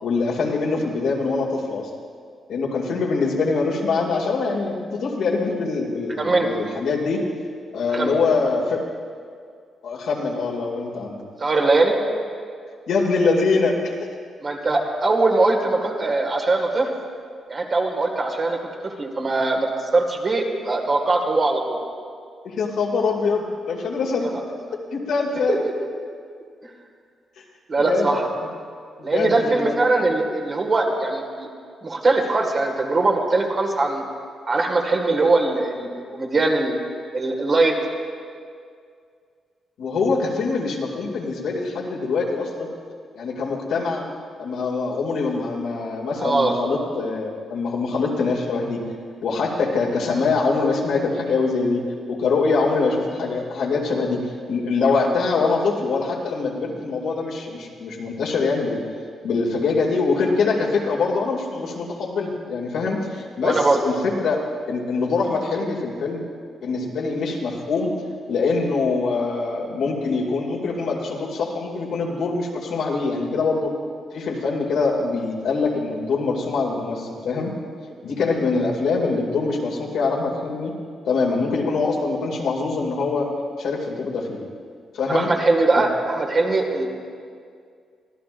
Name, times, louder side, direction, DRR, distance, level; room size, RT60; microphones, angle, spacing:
voice 1, 0.0-1.9 2.5-7.2 7.7-8.8 9.8-11.2 12.9-13.8 22.4-24.4 24.9-25.6 27.4-27.5 27.8-28.2 29.0-29.7 39.8-42.7 43.1-44.1 44.4-48.8 49.2-51.8 52.1-54.2 54.5-58.8 59.2-66.2 66.6-67.9 68.3-73.7 74.1-77.5 78.0-80.7 81.1-83.3 83.6-84.4 84.9-85.3, left 4 dB, 80° left, -1 dB, 2.5 m, -23 dB
voice 2, 6.2-6.5 7.9-8.2 11.4-12.0 14.4-16.9 17.5-21.8 24.2-24.3 25.5-25.7 27.7-28.3 29.0-31.5 31.8-34.0 34.5-36.8 37.1-37.7 46.2-46.6 63.4-63.8 85.1-86.9, right 3 dB, 35° right, 1 dB, 2.0 m, -21 dB
24.0 x 16.0 x 2.6 m, 2.2 s
cardioid pair, 135°, 0 cm